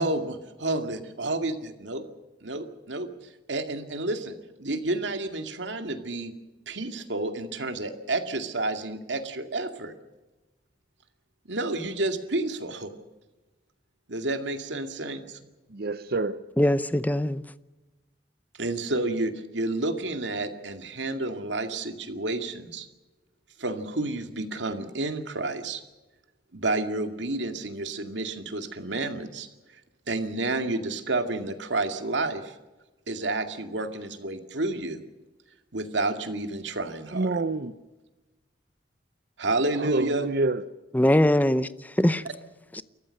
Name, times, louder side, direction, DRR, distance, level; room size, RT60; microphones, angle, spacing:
voice 1, 0.0-2.0 2.4-3.1 3.5-6.3 6.7-9.9 11.5-12.9 14.1-15.4 18.6-22.9 23.6-25.8 26.5-29.5 30.1-32.5 33.1-35.0 35.7-37.3 39.4-40.3, right 2 dB, 80° right, 2.2 m, -30 dB
voice 2, 15.7-16.4 37.1-37.7 39.8-40.6, right 3 dB, 55° right, 0.7 m, -27 dB
voice 3, 16.6-17.4 40.9-41.7 42.0-42.2 42.7-42.8, left 1 dB, 10° left, 0.7 m, -21 dB
29.5 x 14.5 x 6.5 m
head